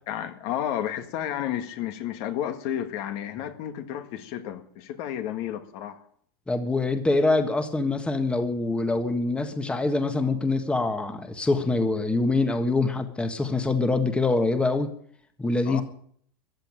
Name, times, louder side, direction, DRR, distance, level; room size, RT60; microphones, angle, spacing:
voice 1, 0.1-6.0 15.7-15.8, left 10 dB, 55° left, 1.8 m, -32 dB
voice 2, 6.5-14.9 15.4-15.8, left 3 dB, 10° left, 1.5 m, -24 dB
14.5 x 10.5 x 8.9 m
supercardioid pair, 135°, 13 cm